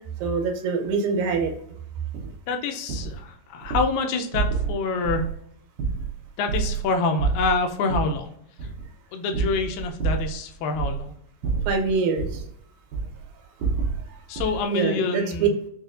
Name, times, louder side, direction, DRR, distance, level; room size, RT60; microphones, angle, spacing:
voice 1, 0.2-1.5 11.7-12.4 14.7-15.5, right 5 dB, 90° right, 4 dB, 2.5 m, -24 dB
sound 1, 2.1-2.3 2.9-3.2 3.6-3.9 4.3-4.8 5.0-5.4 5.8-6.9 7.2-8.2 8.6-8.9 9.3-10.4 10.7-11.1 11.4-12.5 12.9-13.2 13.6-14.0 14.4-14.6, right 5 dB, 70° right, 2.0 m, -28 dB
voice 2, 2.5-5.3 6.4-8.3 8.6-8.7 9.1-11.1 14.3-15.5, left 3 dB, 85° left, 4 dB, 2.3 m, -26 dB
6.3 x 2.4 x 2.4 m, 0.71 s
omnidirectional pair, 4.0 m